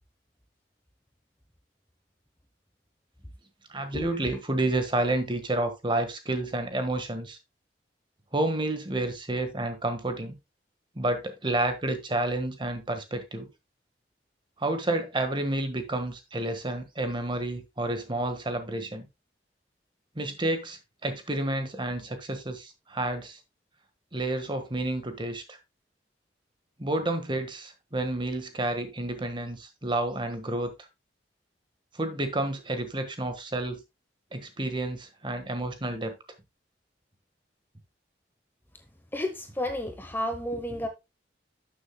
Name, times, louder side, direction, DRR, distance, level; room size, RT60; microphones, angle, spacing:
voice 1, 3.7-7.4 8.3-10.3 10.9-13.5 14.6-19.1 20.1-23.4 24.1-25.6 26.8-30.9 31.9-33.8 34.3-36.1, right 2 dB, 30° right, 1.5 m, -30 dB
voice 2, 39.1-40.9, left 1 dB, 10° left, 0.9 m, -31 dB
12.0 x 6.9 x 2.2 m
head